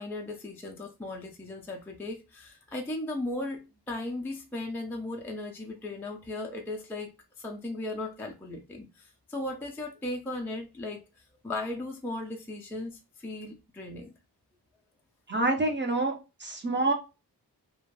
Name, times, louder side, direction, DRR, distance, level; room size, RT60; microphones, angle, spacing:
voice 1, 0.0-11.0 11.4-14.1, left 2 dB, 5° left, 0.3 m, -37 dB
voice 2, 15.3-16.1 16.4-16.9, right 2 dB, 25° right, 0.6 m, -26 dB
2.5 x 2.1 x 3.1 m
wide cardioid pair, 125°, 40 cm